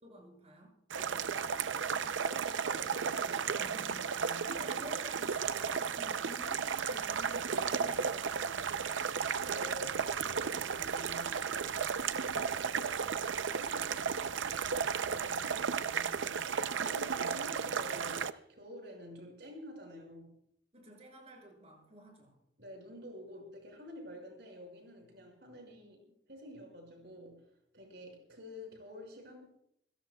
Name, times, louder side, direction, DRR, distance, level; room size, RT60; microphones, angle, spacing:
voice 1, 0.0-0.8 3.5-9.2 20.7-22.4 25.0-25.2 25.7-25.8, right 1 dB, 35° right, 0 dB, 6.8 m, -52 dB
sound 1, 0.9-18.3, right 6 dB, 85° right, 0.6 m, -34 dB
voice 2, 1.0-3.6 4.2-4.6 9.3-14.7 15.0-20.4 22.6-26.0 26.3-27.5 27.7-29.5, left 1 dB, 60° right, 1 dB, 5.9 m, -50 dB
27.5 x 16.5 x 2.3 m, 0.72 s
head